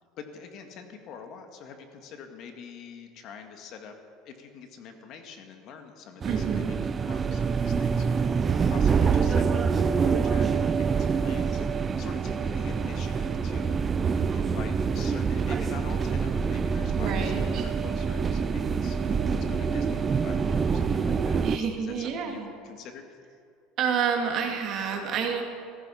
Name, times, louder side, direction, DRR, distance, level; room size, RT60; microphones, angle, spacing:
voice 1, 0.2-3.9 4.2-6.6 7.1-8.4 8.7-13.8 14.3-17.3 17.8-23.1, left 6 dB, 50° left, 5 dB, 2.0 m, -45 dB
sound 1, 6.2-21.6, right 5 dB, 25° right, 0.6 m, -26 dB
voice 2, 6.2-6.7 16.9-17.7 21.4-22.5 23.8-25.4, right 7 dB, 45° right, 2 dB, 2.7 m, -29 dB
15.5 x 14.5 x 5.8 m, 2.3 s
cardioid pair, 135°, 0 cm